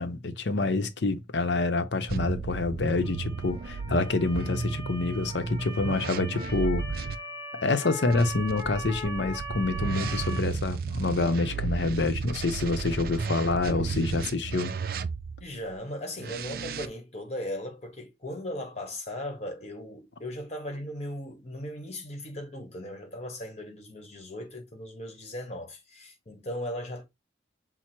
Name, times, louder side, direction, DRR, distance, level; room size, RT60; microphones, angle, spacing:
voice 1, 0.0-6.8 7.5-14.7, left 3 dB, 85° left, 0.7 m, -27 dB
sound 1, 2.1-7.2 8.1-15.5 16.2-16.9, right 5 dB, 55° right, 0.4 m, -33 dB
Motor vehicle (road) / Siren, 2.9-10.4, right 1 dB, 15° right, 1.0 m, -40 dB
voice 2, 13.0-13.4 15.4-27.0, left 1 dB, 40° left, 1.2 m, -38 dB
5.9 x 2.0 x 4.4 m
head